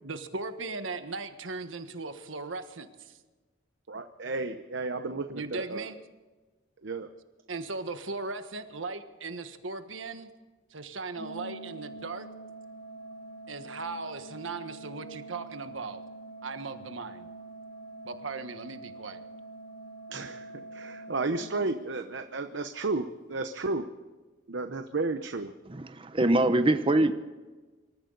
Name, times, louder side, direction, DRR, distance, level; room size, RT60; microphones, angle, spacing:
voice 1, 0.0-3.2 5.3-6.0 7.5-10.3 10.7-12.3 13.5-16.0 16.4-17.3 18.0-19.3, right 3 dB, 85° right, 8 dB, 1.4 m, -38 dB
voice 2, 3.9-5.9 6.8-7.1 20.1-23.9 24.5-25.5, right 3 dB, 65° right, 7 dB, 0.9 m, -33 dB
Organ, 11.2-22.2, right 2 dB, 45° left, 2.1 m, -45 dB
voice 3, 25.9-27.1, right 1 dB, 30° right, 9 dB, 0.8 m, -23 dB
26.0 x 14.0 x 4.0 m, 1.3 s
head